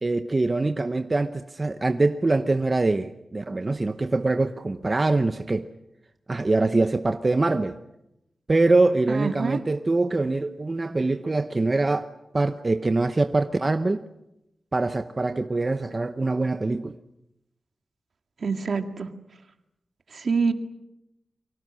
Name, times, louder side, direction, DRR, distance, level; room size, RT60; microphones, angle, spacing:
voice 1, 0.0-5.7 6.3-7.8 8.5-12.1 12.3-14.1 14.7-17.0, right 2 dB, 30° right, 0.9 m, -24 dB
voice 2, 9.1-9.6 18.4-19.1 20.1-20.5, right 5 dB, 60° right, 2.0 m, -26 dB
30.0 x 24.0 x 6.3 m
wide cardioid pair, 115°, 0 cm